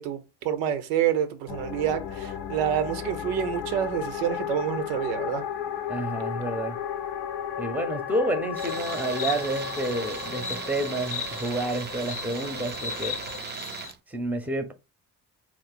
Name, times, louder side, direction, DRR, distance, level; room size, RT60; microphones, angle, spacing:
voice 1, 0.0-5.4, right 9 dB, 70° right, 0.6 m, -28 dB
sound 1, 1.5-13.4, left 8 dB, 65° left, 0.6 m, -35 dB
voice 2, 5.9-6.8 7.6-13.4 14.1-14.7, right 1 dB, 5° right, 0.7 m, -30 dB
Insect, 8.6-13.9, left 6 dB, 30° left, 0.6 m, -38 dB
Tools, 8.6-14.0, right 6 dB, 25° right, 0.4 m, -38 dB
2.9 x 2.0 x 4.1 m
figure-of-eight pair, 45°, 47 cm